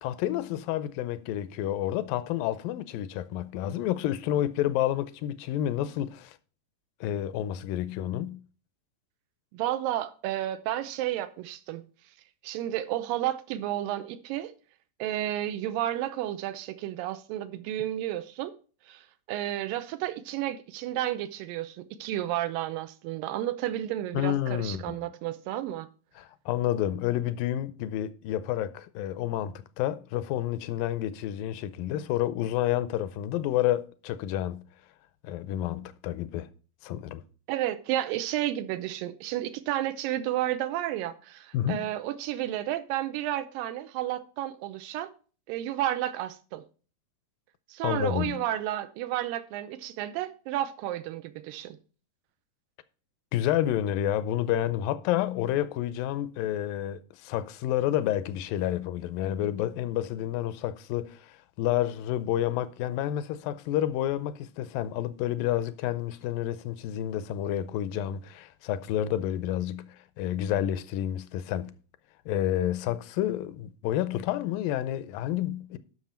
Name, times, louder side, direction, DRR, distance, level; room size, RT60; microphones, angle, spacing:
voice 1, 0.0-6.4 7.0-8.4 24.1-25.0 26.2-34.6 35.2-36.5 36.8-37.2 41.5-41.9 47.8-48.4 53.3-71.7 72.3-75.8, left 12 dB, 85° left, 2.3 m, -29 dB
voice 2, 9.5-11.8 12.4-14.5 15.0-18.5 18.9-25.9 37.5-45.1 45.5-46.6 47.7-51.8, right 13 dB, 90° right, 2.4 m, -32 dB
11.5 x 6.2 x 4.3 m
omnidirectional pair, 4.0 m